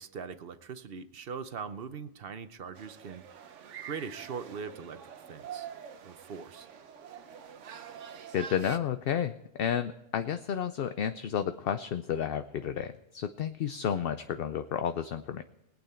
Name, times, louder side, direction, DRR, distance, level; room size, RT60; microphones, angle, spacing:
voice 1, 0.0-3.5 3.8-5.0 5.3-5.7 6.0-6.7, right 6 dB, 55° right, 11 dB, 0.9 m, -41 dB
sound 1, 2.7-8.8, right 8 dB, 80° right, 1.2 m, -46 dB
voice 2, 8.3-9.3 9.6-15.4, left 8 dB, 60° left, 9 dB, 0.7 m, -31 dB
20.0 x 9.0 x 4.4 m, 0.93 s
omnidirectional pair, 1.2 m